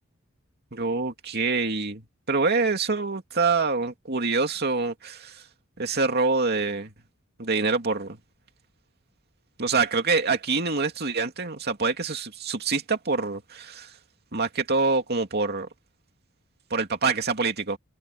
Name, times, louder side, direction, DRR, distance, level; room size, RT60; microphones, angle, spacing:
voice 1, 0.7-5.4 5.8-6.9 7.4-8.2 9.6-13.9 14.3-15.7 16.7-17.8, right 4 dB, 55° right, 2.6 m, -26 dB
head